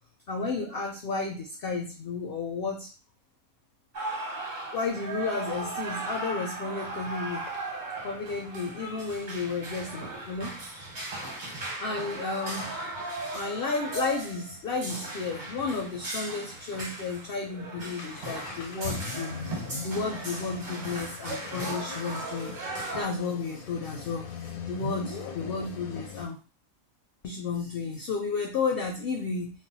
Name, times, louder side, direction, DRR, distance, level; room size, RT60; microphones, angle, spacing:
voice 1, 0.3-2.9 4.7-7.4 8.0-10.6 11.8-12.8 13.3-24.3 24.7-26.4 27.2-29.5, left 4 dB, 65° left, 1 dB, 0.6 m, -32 dB
sound 1, 3.9-23.0, right 2 dB, 40° right, 0.9 m, -37 dB
sound 2, 6.9-7.0 7.5-10.1 10.7-10.8 11.2-11.3 11.7-15.4 15.7-15.8 16.0-16.1 16.7-16.8 17.1-26.3, left 5 dB, 85° left, 1.0 m, -41 dB
2.4 x 2.1 x 3.9 m, 0.35 s
omnidirectional pair, 1.4 m